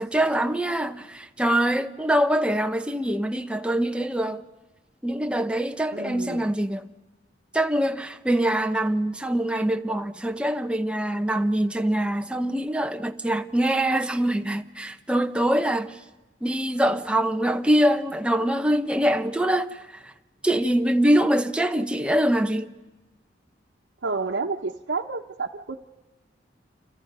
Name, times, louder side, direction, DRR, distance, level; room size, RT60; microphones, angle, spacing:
voice 1, 0.0-4.4 5.0-6.8 7.5-16.0 16.4-20.1 20.4-22.7, right 1 dB, 5° right, 0.9 m, -24 dB
voice 2, 5.9-6.5 24.0-25.8, right 4 dB, 90° right, 0.9 m, -30 dB
29.5 x 27.0 x 5.5 m
head